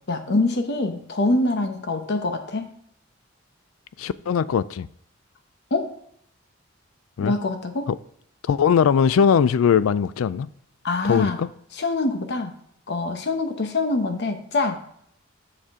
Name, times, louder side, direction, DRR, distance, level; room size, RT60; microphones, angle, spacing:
voice 1, 0.1-2.7 5.7-5.9 7.2-7.9 10.8-11.4 11.7-12.5 12.9-14.8, left 2 dB, 60° left, 0.9 m, -24 dB
voice 2, 4.0-4.9 7.2-7.3 7.9-8.0 8.5-10.5 11.0-11.5, left 7 dB, 85° left, 0.3 m, -20 dB
7.9 x 6.6 x 3.6 m
head